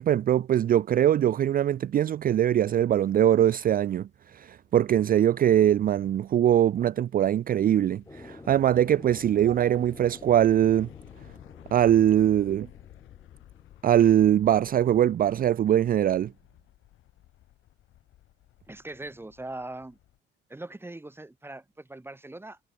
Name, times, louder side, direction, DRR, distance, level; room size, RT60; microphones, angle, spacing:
voice 1, 0.0-10.9 11.7-12.7 13.8-16.3, right 11 dB, 45° right, 0.4 m, -22 dB
sound 1, 4.7-20.2, left 14 dB, 85° left, 4.8 m, -54 dB
sound 2, 8.1-14.9, left 2 dB, 15° left, 3.0 m, -50 dB
voice 2, 18.7-20.0 20.5-22.6, right 2 dB, 10° right, 1.8 m, -41 dB
cardioid pair, 90°, 20 cm